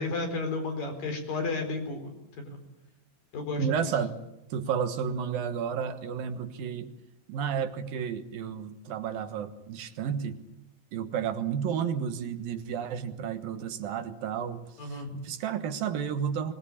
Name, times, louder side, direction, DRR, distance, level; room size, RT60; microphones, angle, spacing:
voice 1, 0.0-2.6 3.3-3.7 14.8-15.1, left 3 dB, 65° left, 4 dB, 5.9 m, -32 dB
voice 2, 3.6-4.2 4.5-6.9 7.3-10.4 10.9-16.5, right 7 dB, 75° right, 8 dB, 3.0 m, -32 dB
24.5 x 19.5 x 8.6 m, 0.86 s
omnidirectional pair, 4.3 m